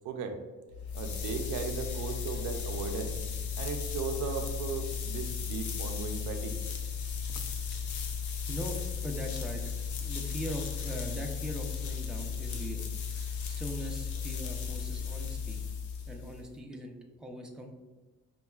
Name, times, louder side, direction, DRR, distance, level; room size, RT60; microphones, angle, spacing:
voice 1, 0.0-0.4 0.9-3.1 3.6-6.6, right 5 dB, 85° right, 5 dB, 0.5 m, -36 dB
sound 1, 0.7-16.5, left 6 dB, 75° left, 0.6 m, -35 dB
voice 2, 7.3-8.2 8.5-9.7 10.0-12.9 13.1-15.6 16.1-17.7, equal, ahead, 0 dB, 0.5 m, -41 dB
5.4 x 2.3 x 2.3 m, 1.2 s
cardioid pair, 90°, 30 cm